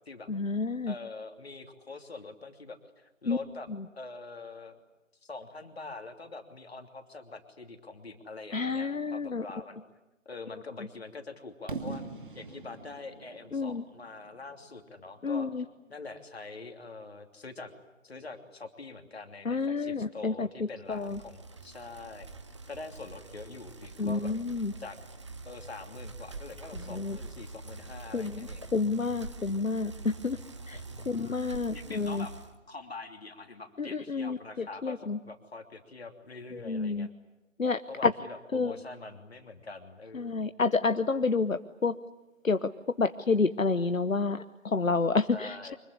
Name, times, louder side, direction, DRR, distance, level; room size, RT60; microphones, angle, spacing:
voice 1, 0.3-1.0 3.3-3.4 3.7-3.9 8.5-9.5 13.5-13.8 15.2-15.7 19.4-21.2 24.0-24.7 26.7-27.2 28.1-30.4 30.7-30.8 31.1-32.3 33.8-35.2 36.5-37.1 37.6-38.1 38.5-38.8 40.1-41.9 42.4-42.7 43.0-45.7, left 4 dB, 80° left, 10 dB, 1.1 m, -29 dB
voice 2, 0.9-3.7 3.9-4.8 5.2-9.8 10.2-12.0 12.3-15.6 15.9-17.7 18.0-22.3 22.7-24.3 24.8-25.0 25.4-29.5 30.3-31.4 31.7-32.3 32.7-37.1 37.9-40.5 45.3-45.8, left 3 dB, 50° left, 6 dB, 3.0 m, -44 dB
Fireworks, 11.7-15.5, right 4 dB, 40° right, 2.5 m, -42 dB
Bicycle, 20.9-32.6, right 3 dB, 20° right, 1.0 m, -45 dB
25.0 x 22.0 x 9.8 m, 1.0 s
figure-of-eight pair, 155°, 40 cm